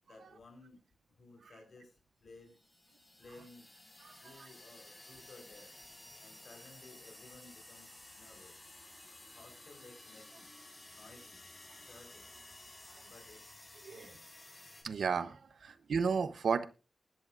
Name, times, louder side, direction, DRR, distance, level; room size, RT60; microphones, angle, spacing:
voice 1, 0.1-0.8 1.2-1.9 2.2-2.6 3.2-3.7 4.2-5.7 6.2-8.8 9.3-10.5 10.9-11.5 11.8-12.3 13.1-14.3, left 3 dB, 60° left, 4.4 m, -57 dB
sound 1, 2.4-14.8, left 2 dB, 30° left, 4.3 m, -54 dB
voice 2, 4.0-4.5 13.8-14.1 14.8-16.6, right 5 dB, 85° right, 0.8 m, -34 dB
20.0 x 10.5 x 2.5 m
wide cardioid pair, 110°, 0 cm